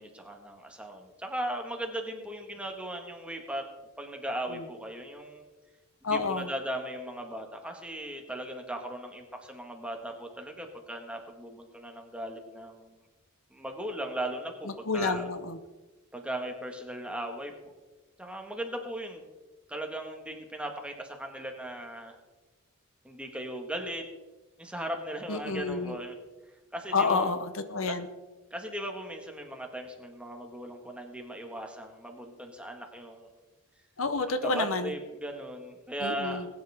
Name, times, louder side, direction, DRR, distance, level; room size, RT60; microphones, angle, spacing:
voice 1, 0.0-3.6 4.0-5.4 6.1-13.0 13.5-15.3 16.1-17.5 18.2-19.2 19.7-22.2 23.0-24.0 24.6-26.2 26.7-27.3 27.8-28.0 28.5-33.4 34.4-36.5, right 1 dB, 5° right, 3 dB, 1.6 m, -37 dB
voice 2, 6.0-6.5 14.9-15.6 25.3-26.0 26.9-28.1 34.0-34.9 36.0-36.5, left 4 dB, 70° left, 10 dB, 0.9 m, -29 dB
20.5 x 9.8 x 3.6 m, 1.2 s
head